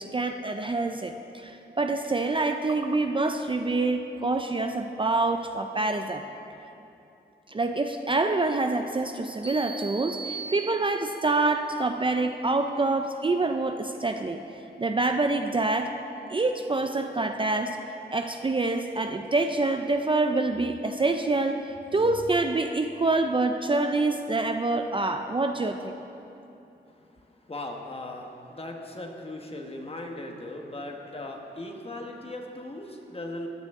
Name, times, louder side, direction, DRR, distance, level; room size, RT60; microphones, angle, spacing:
voice 1, 0.0-6.2 7.5-14.4 14.8-15.9 16.3-17.8 18.1-25.9, right 3 dB, 30° right, 6 dB, 0.4 m, -26 dB
sound 1, 9.4-11.3, right 5 dB, 5° right, 1.3 m, -39 dB
voice 2, 27.4-33.5, left 1 dB, 30° left, 2 dB, 1.1 m, -38 dB
15.5 x 9.3 x 3.6 m, 2.8 s
wide cardioid pair, 115°, 18 cm